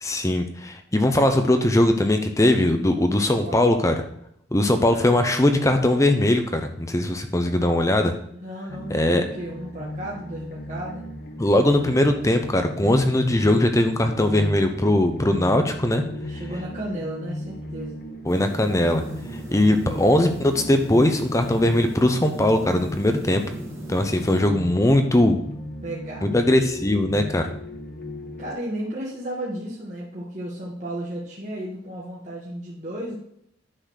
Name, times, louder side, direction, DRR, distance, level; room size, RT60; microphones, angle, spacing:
voice 1, 0.0-3.9 4.5-8.1 8.9-9.2 11.4-16.0 18.3-19.0 19.3-23.4 23.9-25.4 26.2-27.5, left 1 dB, 15° left, 6 dB, 0.6 m, -20 dB
voice 2, 4.9-5.3 8.3-11.1 16.0-18.0 19.5-20.0 25.8-26.4 28.4-33.2, right 1 dB, 40° right, -5 dB, 1.7 m, -34 dB
sound 1, 8.7-28.5, equal, 50° left, 1.1 m, -36 dB
sound 2, 18.3-24.4, right 1 dB, 15° right, 1.6 m, -39 dB
10.0 x 4.0 x 6.4 m, 0.73 s
head